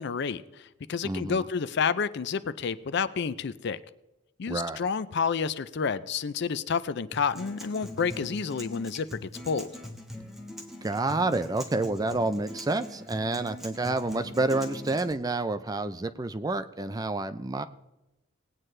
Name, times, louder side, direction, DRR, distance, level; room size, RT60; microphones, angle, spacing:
voice 1, 0.0-3.8 4.4-9.7, left 6 dB, 60° left, 14 dB, 0.5 m, -30 dB
voice 2, 1.0-1.4 4.5-4.8 10.8-17.7, right 2 dB, 20° right, 11 dB, 0.4 m, -29 dB
Acoustic guitar, 7.1-15.1, left 1 dB, ahead, 1.4 m, -42 dB
19.5 x 9.1 x 3.3 m, 0.97 s
head